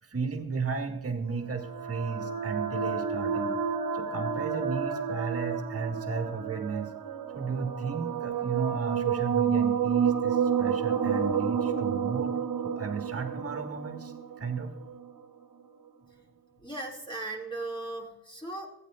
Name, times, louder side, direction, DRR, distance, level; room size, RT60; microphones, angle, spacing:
voice 1, 0.0-3.6 3.9-6.9 7.3-12.3 12.6-14.7, right 4 dB, 30° right, 5 dB, 1.8 m, -34 dB
sound 1, 1.4-15.1, right 7 dB, 50° right, 1.3 m, -30 dB
voice 2, 16.6-18.7, right 2 dB, 10° left, -2 dB, 2.5 m, -37 dB
15.0 x 9.8 x 2.5 m, 0.96 s
hypercardioid pair, 55°, 45 cm